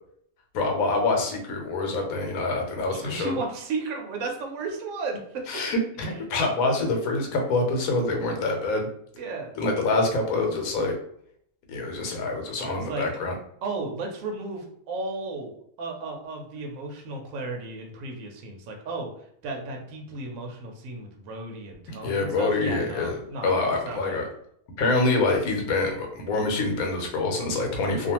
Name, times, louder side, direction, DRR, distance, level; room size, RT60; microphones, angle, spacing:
voice 1, 0.5-3.4 5.5-8.9 9.6-10.9 11.7-13.3 22.0-23.2 23.4-24.2 24.8-28.1, left 3 dB, 80° left, 2 dB, 1.1 m, -26 dB
voice 2, 2.9-5.8 9.1-9.5 12.6-13.1 13.6-19.1 19.4-23.6 23.8-24.3, right 3 dB, 75° right, 1 dB, 1.0 m, -34 dB
2.5 x 2.3 x 2.8 m, 0.67 s
omnidirectional pair, 1.5 m